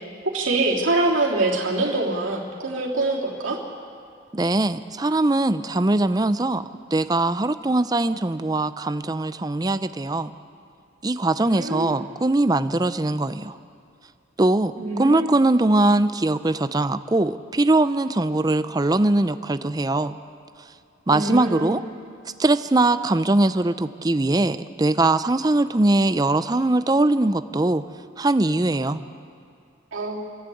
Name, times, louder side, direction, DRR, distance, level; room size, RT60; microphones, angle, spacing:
voice 1, 0.3-3.6 11.4-12.0 14.8-15.4 21.1-21.7 29.9-30.3, right 2 dB, 85° right, -2 dB, 3.3 m, -24 dB
voice 2, 4.3-10.3 11.0-13.6 14.4-20.2 21.1-21.8 22.4-27.8 28.2-29.0, right 2 dB, 20° right, 12 dB, 0.5 m, -21 dB
27.5 x 11.5 x 8.5 m, 2.3 s
head